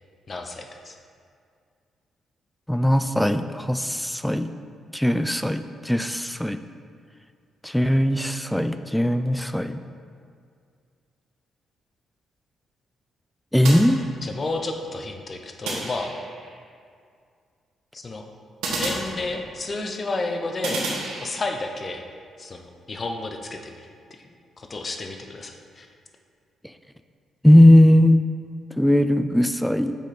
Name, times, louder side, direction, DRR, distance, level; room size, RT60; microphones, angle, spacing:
voice 1, 0.3-0.9 14.2-16.1 17.9-18.2 18.8-20.8 21.2-22.0 22.4-23.9 24.6-25.9, left 2 dB, 40° left, 4 dB, 0.7 m, -31 dB
voice 2, 2.7-4.5 4.9-6.6 7.6-9.8 13.5-14.0 27.4-28.2 28.8-29.9, left 1 dB, 5° left, 10 dB, 0.3 m, -18 dB
sound 1, 13.6-14.6 15.6-16.5 18.6-19.7 20.6-21.7, right 2 dB, 85° right, 1.2 m, -32 dB
6.4 x 4.8 x 4.2 m, 2.2 s
cardioid pair, 80°, 0 cm